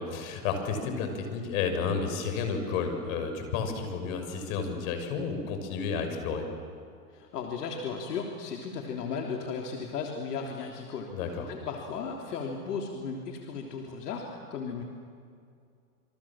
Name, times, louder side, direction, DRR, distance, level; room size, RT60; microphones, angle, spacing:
voice 1, 0.0-6.5 11.1-11.5, left 5 dB, 55° left, 6 dB, 6.3 m, -31 dB
voice 2, 7.1-14.8, left 5 dB, 80° left, 1 dB, 3.5 m, -36 dB
28.5 x 25.5 x 7.5 m, 2.4 s
hypercardioid pair, 130°, 46 cm